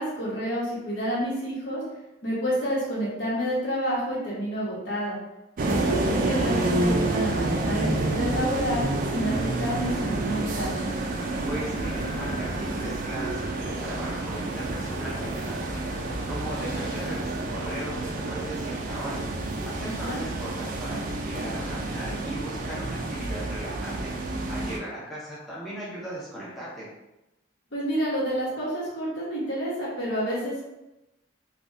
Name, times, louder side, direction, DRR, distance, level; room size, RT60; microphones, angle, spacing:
voice 1, 0.0-1.8 2.2-5.2 5.7-10.7 19.8-20.2 27.7-30.6, equal, 70° left, -6 dB, 1.1 m, -29 dB
sound 1, 5.6-24.8, right 2 dB, 45° right, 0.3 m, -29 dB
voice 2, 11.4-15.8 16.3-19.2 19.6-24.0 24.5-26.9, right 1 dB, ahead, -8 dB, 0.6 m, -37 dB
3.3 x 2.2 x 2.6 m, 0.96 s
head